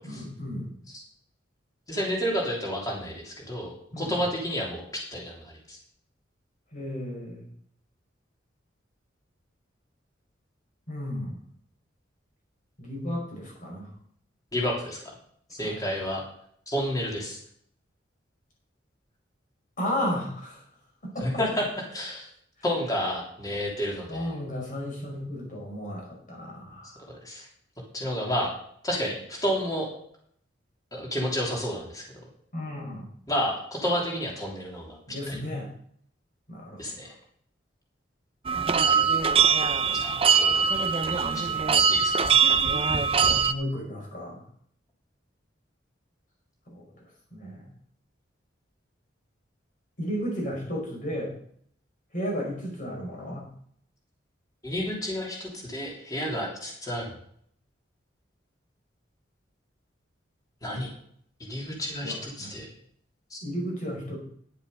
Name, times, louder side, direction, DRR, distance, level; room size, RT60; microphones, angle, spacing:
voice 1, 0.0-0.7 3.9-4.2 6.7-7.4 10.9-11.4 12.8-13.9 15.6-15.9 19.8-20.7 21.0-21.3 24.1-27.0 32.5-33.1 35.1-35.8 36.5-37.1 43.2-44.4 46.7-47.7 50.0-51.3 52.1-53.5 62.0-62.6 63.4-64.2, equal, 45° left, -2 dB, 5.3 m, -34 dB
voice 2, 1.9-5.8 14.5-15.1 15.5-16.2 16.7-17.4 21.2-22.3 22.6-24.3 27.2-27.5 27.9-28.5 28.8-29.9 30.9-32.0 33.3-35.0 35.3-35.4 36.8-37.1 40.0-41.5 41.9-42.4 54.6-57.1 60.6-60.9 61.4-62.7 63.3-63.4, equal, 20° left, -2 dB, 3.2 m, -31 dB
sound 1, 38.5-43.5, right 6 dB, 30° right, 0.6 m, -22 dB
10.5 x 8.1 x 5.3 m, 0.64 s
head